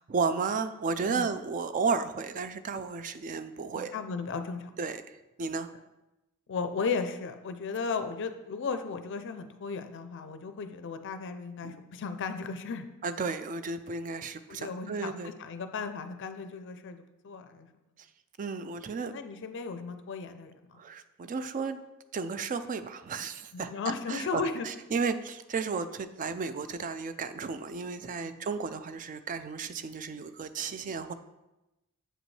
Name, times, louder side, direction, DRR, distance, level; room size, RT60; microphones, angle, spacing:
voice 1, 0.0-4.0 4.8-5.7 11.6-11.8 13.0-15.3 18.4-19.1 20.8-21.8 22.1-23.7 24.1-31.1, right 5 dB, 35° right, 11 dB, 0.3 m, -33 dB
voice 2, 3.7-4.7 6.5-12.9 14.5-17.7 19.0-20.8 23.5-24.7 28.2-28.5, left 5 dB, 55° left, 9 dB, 0.4 m, -35 dB
7.5 x 5.1 x 3.2 m, 0.99 s
head